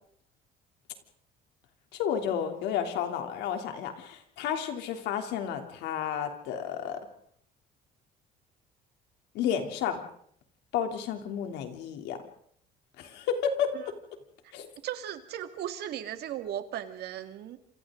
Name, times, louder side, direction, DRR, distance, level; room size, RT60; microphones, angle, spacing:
voice 1, 1.9-7.0 9.3-10.0 10.7-12.2 13.0-13.7 14.5-14.7, left 8 dB, 90° left, 5 dB, 3.2 m, -31 dB
voice 2, 14.8-17.6, right 11 dB, 70° right, 8 dB, 2.2 m, -36 dB
28.0 x 27.0 x 3.9 m, 0.63 s
cardioid pair, 110°, 17 cm